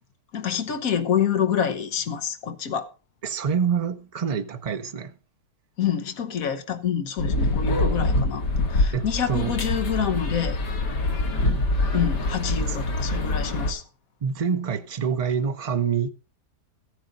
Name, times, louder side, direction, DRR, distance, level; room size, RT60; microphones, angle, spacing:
voice 1, 0.3-2.9 5.8-8.4 8.7-10.6 11.9-13.8, left 8 dB, 60° left, 1.4 m, -27 dB
voice 2, 3.2-5.1 8.9-9.5 12.6-12.8 14.2-16.1, right 7 dB, 70° right, 0.3 m, -26 dB
sound 1, 7.2-13.7, left 2 dB, 85° left, 2.4 m, -25 dB
14.5 x 9.3 x 3.9 m
omnidirectional pair, 1.8 m